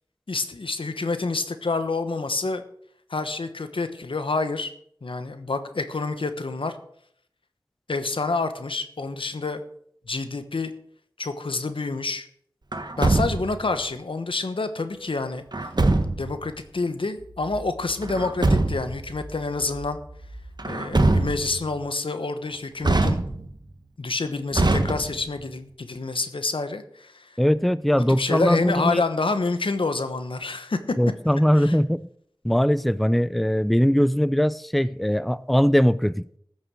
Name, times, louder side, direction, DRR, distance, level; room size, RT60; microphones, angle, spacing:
voice 1, 0.3-2.6 3.1-4.7 5.0-6.8 7.9-9.6 10.1-10.7 11.2-12.3 13.0-15.4 16.2-20.0 20.7-23.2 24.0-27.4 28.1-30.8 31.5-31.8, left 3 dB, 90° left, 1.1 m, -28 dB
Truck, 12.7-13.7 15.5-16.4 18.0-19.0 20.6-21.6 22.8-23.6 24.5-25.4, right 2 dB, 55° right, 1.3 m, -23 dB
sound 1, 17.2-20.7, right 1 dB, 75° right, 4.0 m, -43 dB
voice 2, 27.4-29.0 31.0-32.0 32.4-36.4, equal, ahead, 0.4 m, -21 dB
14.5 x 6.5 x 6.3 m
wide cardioid pair, 55°, 9 cm